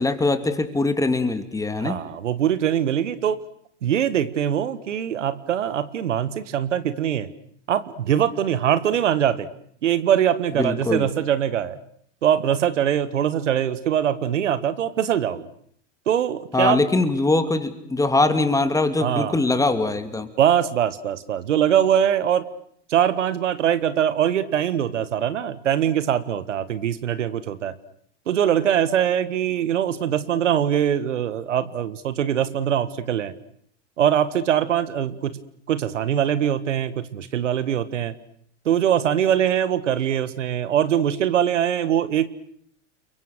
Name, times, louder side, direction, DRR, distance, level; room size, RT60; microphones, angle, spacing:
voice 1, 0.0-2.0 10.6-11.1 16.5-20.3, left 2 dB, 10° left, 9 dB, 2.6 m, -22 dB
voice 2, 1.8-3.4 3.8-7.3 7.7-9.5 9.8-11.8 12.2-15.5 16.1-16.9 19.0-19.4 20.4-22.5 22.9-27.7 28.3-33.3 34.0-35.4 35.7-38.1 38.6-42.3, right 9 dB, 85° right, 14 dB, 1.6 m, -22 dB
30.0 x 23.0 x 6.7 m, 0.63 s
hypercardioid pair, 105°, 36 cm